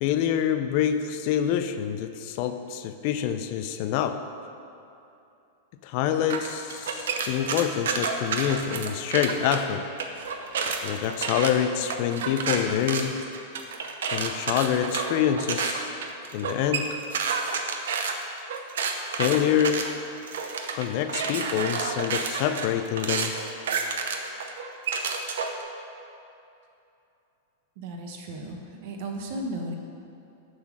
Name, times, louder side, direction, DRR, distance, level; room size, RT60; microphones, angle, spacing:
voice 1, 0.0-4.2 5.8-9.9 10.8-13.2 14.1-16.0 16.3-16.9 19.1-19.9 20.7-23.3, left 9 dB, 50° left, 9 dB, 0.4 m, -26 dB
sound 1, 6.3-9.6 10.0-25.6, right 5 dB, 85° right, 0.6 m, -30 dB
voice 2, 27.8-29.8, right 1 dB, 60° right, 2 dB, 1.0 m, -35 dB
7.2 x 3.9 x 6.1 m, 2.7 s
supercardioid pair, 145°, 0 cm